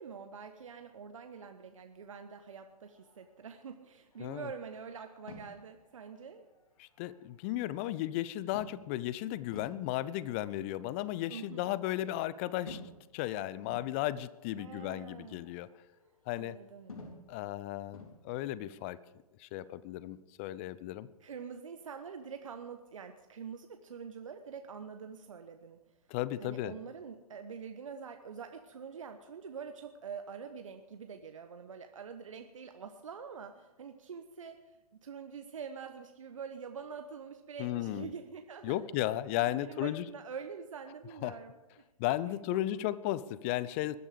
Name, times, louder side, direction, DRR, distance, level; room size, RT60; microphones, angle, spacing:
voice 1, 0.0-6.5 11.3-11.7 14.6-15.5 16.3-17.0 21.2-25.8 26.4-38.9 39.4-41.6 42.5-42.9, right 6 dB, 55° right, 7 dB, 1.2 m, -45 dB
sound 1, 2.7-7.9 8.5-9.1 9.5-12.0 12.7-13.2 13.7-16.6 16.9-17.3 17.9-18.3, left 2 dB, 60° left, 3.8 m, -53 dB
voice 2, 4.2-4.5 6.8-12.8 13.1-15.7 16.3-16.6 17.3-19.0 19.4-21.1 26.1-26.8 37.6-38.1 38.6-40.0 41.2-41.3 42.0-44.0, left 14 dB, 20° left, 18 dB, 0.5 m, -35 dB
20.0 x 12.0 x 5.0 m, 1.1 s
figure-of-eight pair, 125°, 20 cm